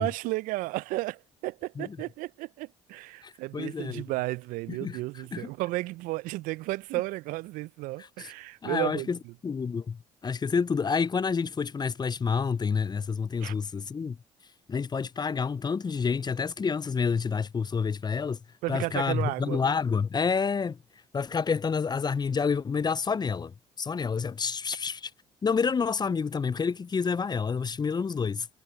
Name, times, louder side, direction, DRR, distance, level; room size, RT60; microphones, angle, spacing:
voice 1, 0.0-9.1 13.4-13.5 18.6-19.6, right 21 dB, 70° right, 0.6 m, -33 dB
voice 2, 3.2-4.0 4.7-5.0 5.3-5.5 8.0-8.3 8.6-9.2 9.4-14.2 14.7-18.4 18.7-20.8 21.1-25.1 25.4-28.5, left 5 dB, 30° left, 0.6 m, -29 dB
hypercardioid pair, 50°, 15 cm